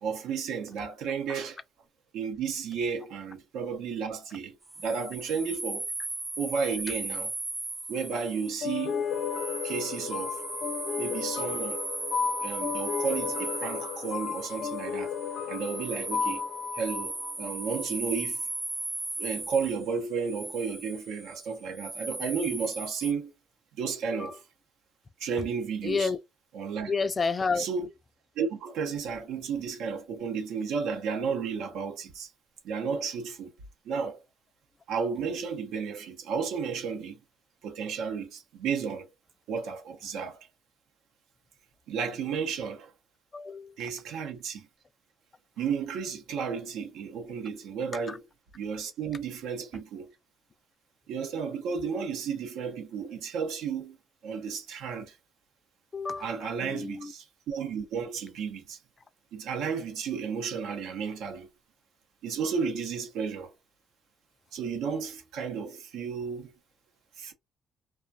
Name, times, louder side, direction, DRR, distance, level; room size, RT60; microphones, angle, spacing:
voice 1, 0.0-1.6 2.1-5.9 6.4-7.3 7.9-9.1 9.6-10.4 11.0-11.8 12.4-15.1 15.5-16.4 16.7-18.5 19.2-23.3 23.8-24.4 25.2-26.1 26.5-26.9 27.5-27.9 28.4-32.3 32.6-33.5 33.8-34.2 34.9-37.2 37.6-39.1 39.5-40.5 41.9-42.9 43.8-44.7 45.6-48.3 48.5-50.1 51.1-54.0 54.2-55.2 56.2-58.8 59.3-61.5 62.2-63.5 64.5-66.5 67.2-67.3, right 6 dB, 90° right, 0.7 m, -33 dB
sound 1, 4.6-23.1, right 2 dB, 25° right, 0.5 m, -37 dB
sound 2, 8.6-17.9, left 6 dB, 75° left, 0.7 m, -33 dB
voice 2, 25.8-26.2 26.9-27.7 43.3-43.7 48.1-48.2 55.9-57.1, left 4 dB, 35° left, 0.3 m, -30 dB
2.3 x 2.2 x 2.6 m
cardioid pair, 90°, 0 cm